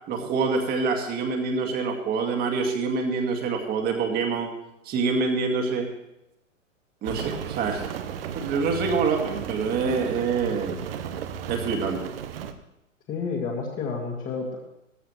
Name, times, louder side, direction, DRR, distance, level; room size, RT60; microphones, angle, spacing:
voice 1, 0.1-4.5 4.9-5.9 7.0-8.0 8.4-10.8 11.5-12.1, right 4 dB, 25° right, 3 dB, 2.1 m, -26 dB
Rain, 7.0-12.5, right 8 dB, 50° right, 1.1 m, -34 dB
voice 2, 13.1-14.6, left 4 dB, 20° left, -2 dB, 2.0 m, -30 dB
17.0 x 14.0 x 3.1 m, 0.85 s
figure-of-eight pair, 115°, 39 cm